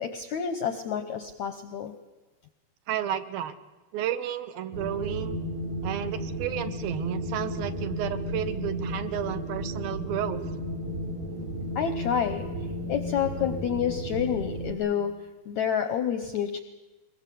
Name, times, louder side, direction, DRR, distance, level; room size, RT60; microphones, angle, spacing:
voice 1, 0.0-1.9 11.7-12.4 12.9-15.1 15.4-16.6, left 8 dB, 75° left, 9 dB, 1.7 m, -28 dB
voice 2, 2.9-3.5 3.9-5.4 5.8-10.4, right 10 dB, 75° right, 10 dB, 2.7 m, -32 dB
Wind, 4.7-14.7, equal, 55° right, 4.0 m, -33 dB
23.0 x 20.5 x 8.5 m, 1.2 s
omnidirectional pair, 4.6 m